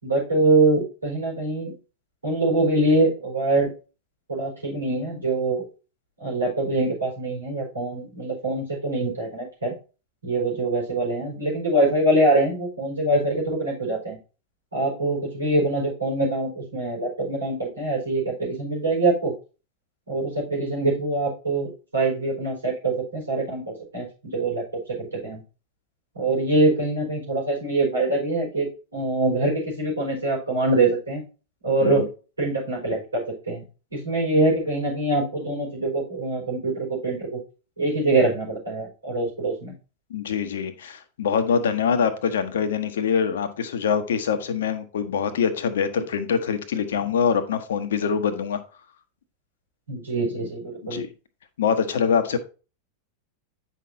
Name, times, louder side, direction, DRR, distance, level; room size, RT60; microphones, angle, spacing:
voice 1, 0.0-1.7 2.2-3.7 4.3-5.6 6.2-9.7 10.2-14.2 14.7-19.3 20.1-25.4 26.1-28.7 28.9-31.2 31.6-32.1 32.4-33.6 33.9-37.4 37.8-39.7 49.9-51.0, right 2 dB, 80° right, -3 dB, 4.4 m, -24 dB
voice 2, 40.1-48.6 50.9-51.1 51.6-52.4, left 6 dB, 60° left, 10 dB, 1.0 m, -24 dB
9.2 x 5.8 x 2.7 m, 0.34 s
figure-of-eight pair, 90°, 0 cm